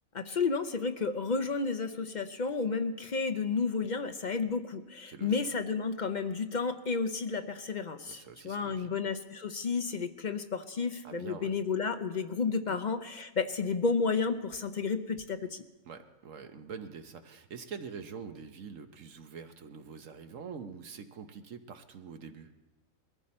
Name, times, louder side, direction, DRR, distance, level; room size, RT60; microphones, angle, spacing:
voice 1, 0.1-15.6, left 4 dB, 45° left, 8 dB, 0.6 m, -32 dB
voice 2, 5.1-5.4 8.1-8.9 11.0-11.5 12.7-12.8 15.8-22.5, right 6 dB, 65° right, 8 dB, 1.3 m, -45 dB
21.5 x 14.5 x 4.3 m, 1.1 s
omnidirectional pair, 1.5 m